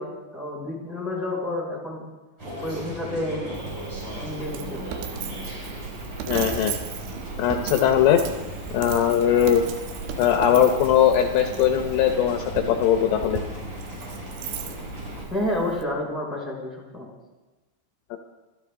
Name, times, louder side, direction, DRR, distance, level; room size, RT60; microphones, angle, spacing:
voice 1, 0.0-2.0 2.6-3.5 4.1-4.8 15.3-17.1, left 1 dB, ahead, -2 dB, 4.7 m, -30 dB
sound 1, 2.4-15.3, equal, 30° right, 6.2 m, -37 dB
Coin (dropping), 3.5-15.8, right 8 dB, 70° right, 2.8 m, -36 dB
voice 2, 6.3-6.7 7.4-8.2 8.7-9.6 10.2-13.4 18.1-18.2, left 10 dB, 75° left, 4 dB, 2.9 m, -20 dB
25.0 x 13.5 x 3.7 m, 1.1 s
omnidirectional pair, 5.4 m